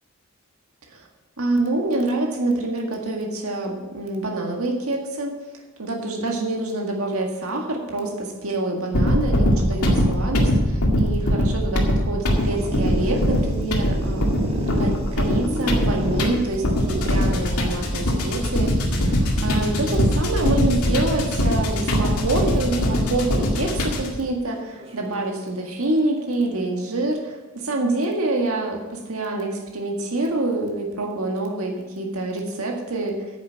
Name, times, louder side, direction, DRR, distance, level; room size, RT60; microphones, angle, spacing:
voice 1, 1.4-14.3 14.8-33.2, right 2 dB, 75° right, 1 dB, 1.9 m, -26 dB
sound 1, 8.9-24.2, equal, 90° left, 2.1 m, -22 dB
sound 2, 12.3-21.7 22.5-23.0 23.4-23.5 23.8-23.9 24.8-25.9, equal, 25° right, 1.6 m, -32 dB
9.9 x 7.2 x 8.1 m, 1.2 s
head